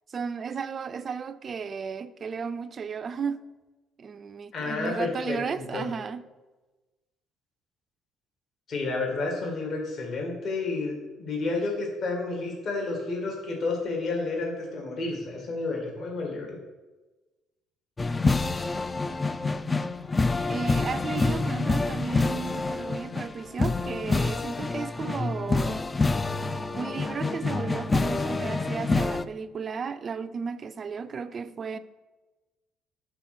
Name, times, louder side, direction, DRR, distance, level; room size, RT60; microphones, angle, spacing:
voice 1, 0.1-3.4 4.0-6.2 20.5-25.8 26.7-31.8, right 6 dB, 45° right, 0.4 m, -34 dB
voice 2, 4.5-5.8 8.7-16.6, left 3 dB, 55° left, 1.9 m, -31 dB
sound 1, 18.0-29.2, left 3 dB, 25° left, 0.4 m, -27 dB
5.6 x 4.0 x 6.0 m
hypercardioid pair, 60°, 0 cm